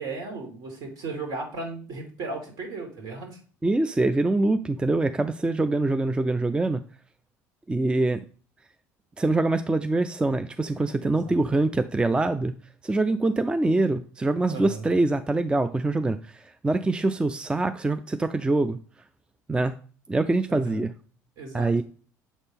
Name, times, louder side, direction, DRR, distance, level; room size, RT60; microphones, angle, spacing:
voice 1, 0.0-3.4 11.0-11.4 14.5-14.8 20.5-20.8 21.4-21.8, right 3 dB, 60° right, 2 dB, 2.4 m, -36 dB
voice 2, 3.6-6.8 7.7-8.2 9.2-12.5 12.8-18.8 19.5-19.7 20.1-20.9 21.5-21.8, right 2 dB, 10° right, 11 dB, 0.4 m, -24 dB
7.0 x 4.1 x 3.4 m, 0.41 s
hypercardioid pair, 70°, 8 cm